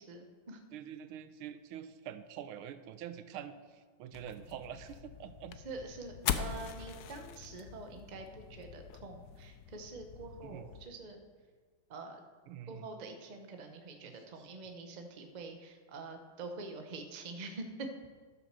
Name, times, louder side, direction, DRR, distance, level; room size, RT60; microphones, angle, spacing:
voice 1, 0.0-0.6 5.6-11.2 11.9-12.2 12.7-17.9, right 3 dB, 40° right, 5 dB, 0.6 m, -46 dB
voice 2, 0.7-5.6 10.4-10.7 12.5-12.9 14.0-14.1, right 9 dB, 90° right, 11 dB, 1.5 m, -46 dB
sound 1, 4.1-10.9, left 9 dB, 80° left, 0.8 m, -42 dB
12.0 x 6.4 x 6.6 m, 1.5 s
omnidirectional pair, 2.3 m